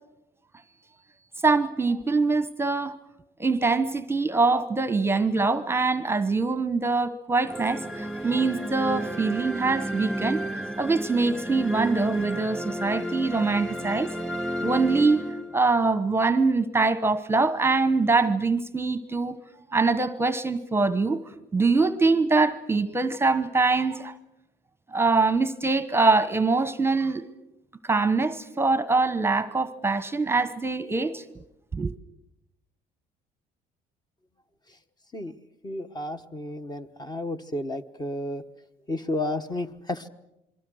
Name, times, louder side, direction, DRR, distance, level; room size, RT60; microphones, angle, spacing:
voice 1, 1.4-3.0 3.4-14.1 14.6-15.2 15.5-19.4 19.7-21.2 21.5-24.1 24.9-27.2 27.8-31.2 31.7-31.9, right 3 dB, 15° right, 1.1 m, -23 dB
sound 1, 7.5-15.8, right 1 dB, 5° left, 2.8 m, -32 dB
voice 2, 35.6-38.4 38.9-40.1, left 1 dB, 25° left, 1.2 m, -32 dB
27.0 x 23.0 x 6.4 m
cardioid pair, 110°, 17 cm